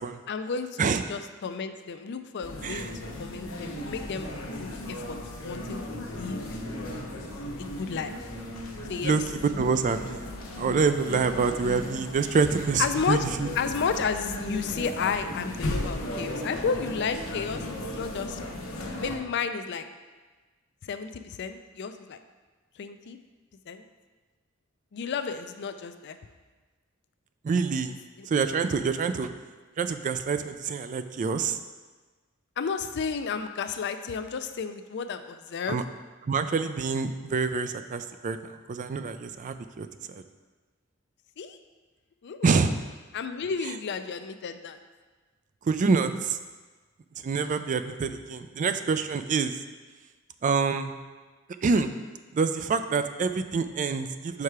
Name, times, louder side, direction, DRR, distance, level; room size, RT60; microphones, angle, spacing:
voice 1, 0.3-2.9 3.1-4.3 4.6-6.6 7.6-8.3 8.9-9.2 12.8-13.3 13.6-18.4 19.0-19.9 20.8-22.2 22.8-23.2 23.7-23.8 24.9-26.2 28.2-28.3 32.6-35.8 41.4-41.6 42.2-42.5 43.1-44.8, left 5 dB, 55° left, 9 dB, 0.4 m, -32 dB
sound 1, 2.4-19.2, left 1 dB, 75° left, 1.0 m, -36 dB
voice 2, 9.6-10.3 10.6-13.5 27.4-28.0 28.3-29.3 29.8-31.6 35.7-35.8 36.3-38.4 38.7-39.9 40.1-40.2 42.4-42.7 45.6-46.4 47.2-49.5 50.4-50.9 51.6-51.9 52.3-54.4, right 5 dB, 40° right, 10 dB, 0.3 m, -26 dB
5.6 x 4.7 x 4.8 m, 1.3 s
head